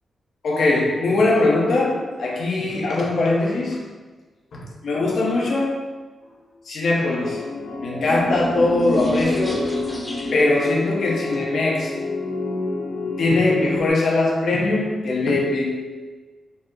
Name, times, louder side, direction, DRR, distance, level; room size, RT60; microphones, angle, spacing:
voice 1, 0.4-3.8 4.5-5.9 6.7-9.8 10.3-12.0 13.2-15.9, left 2 dB, 70° left, -2 dB, 0.8 m, -21 dB
sound 1, 7.2-13.9, left 3 dB, 40° left, 0.4 m, -29 dB
sound 2, 7.5-10.6, equal, 15° left, 0.8 m, -28 dB
4.1 x 2.1 x 3.7 m, 1.3 s
cardioid pair, 95°, 0 cm